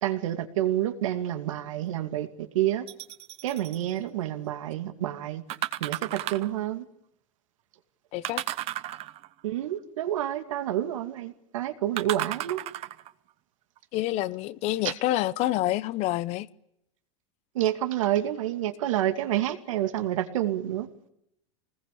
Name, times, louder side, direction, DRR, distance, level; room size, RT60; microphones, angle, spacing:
voice 1, 0.0-2.3 2.5-2.9 3.4-5.4 5.8-6.8 9.4-12.6 17.5-20.9, right 12 dB, 85° right, 2.6 m, -28 dB
sound 1, 2.9-3.8 5.5-6.6 8.2-9.4 12.0-13.1 13.8-13.9, right 15 dB, 40° right, 1.0 m, -34 dB
voice 2, 8.1-8.4 13.9-16.5, left 15 dB, 40° left, 0.9 m, -27 dB
24.5 x 20.0 x 8.5 m
supercardioid pair, 145°, 16 cm